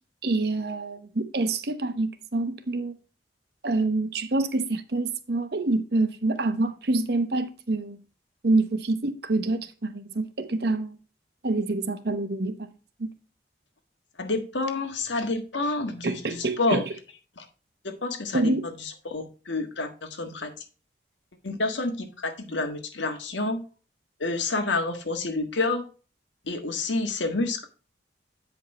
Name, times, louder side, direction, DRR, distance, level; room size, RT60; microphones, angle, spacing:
voice 1, 0.2-3.0 3.6-8.0 8.4-11.0 11.4-12.7 13.0-13.1 16.0-16.8 18.3-18.7, right 2 dB, 60° right, 0.8 m, -26 dB
voice 2, 14.2-16.8 17.4-17.5 17.8-20.5 21.4-23.6 24.2-25.8 26.4-27.6, left 3 dB, 85° left, 1.5 m, -29 dB
8.4 x 5.2 x 4.2 m
head